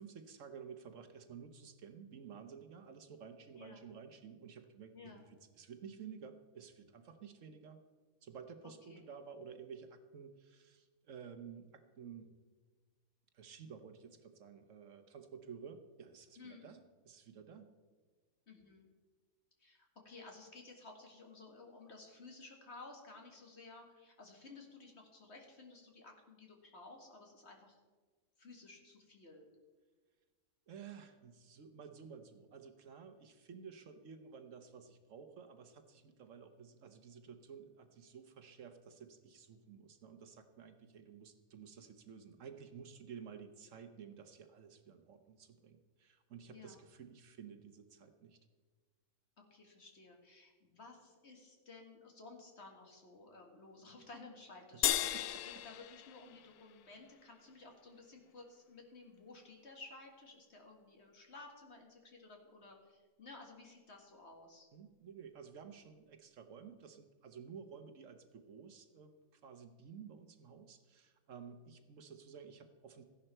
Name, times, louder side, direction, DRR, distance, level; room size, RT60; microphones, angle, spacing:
voice 1, 0.0-7.8 8.2-12.3 13.3-17.7 30.7-48.4 54.7-54.8 55.1-55.4 64.7-73.0, right 6 dB, 65° right, 8 dB, 1.2 m, -53 dB
voice 2, 4.9-5.3 8.9-9.0 16.4-16.7 18.5-18.9 19.6-27.8 28.4-29.5 46.5-46.8 49.5-64.7, left 3 dB, 50° left, 2 dB, 2.0 m, -55 dB
sound 1, 54.8-57.4, left 13 dB, 85° left, 1.1 m, -37 dB
14.5 x 11.0 x 4.4 m, 1.4 s
omnidirectional pair, 1.5 m